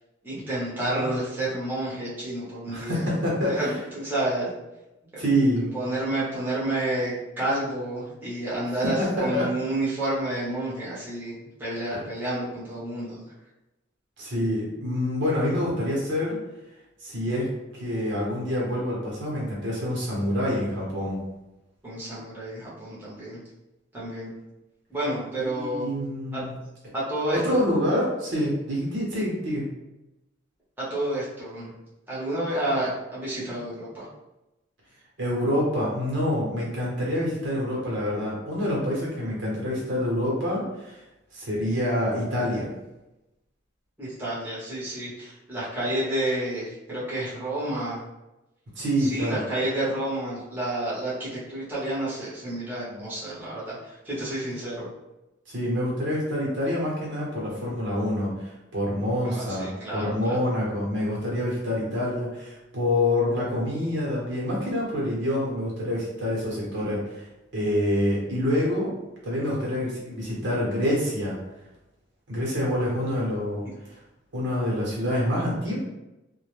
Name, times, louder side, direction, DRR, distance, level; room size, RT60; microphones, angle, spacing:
voice 1, 0.2-3.0 3.5-4.5 5.1-5.2 5.6-11.3 11.6-13.2 21.8-23.4 23.9-24.3 24.9-25.9 26.3-26.4 26.9-27.6 30.8-31.7 32.1-34.0 44.0-48.0 49.0-54.9 59.2-60.4, right 1 dB, 10° right, -10 dB, 0.8 m, -30 dB
voice 2, 2.6-3.7 5.2-5.7 8.8-9.5 11.9-12.0 14.2-16.4 17.0-17.5 17.7-21.2 25.4-26.6 27.3-29.6 35.2-41.0 41.3-42.7 48.7-49.4 55.5-67.2 67.5-68.9 69.2-71.4 72.3-73.7 74.3-75.8, left 1 dB, 65° right, -4 dB, 0.9 m, -26 dB
2.1 x 2.1 x 3.0 m, 0.97 s
head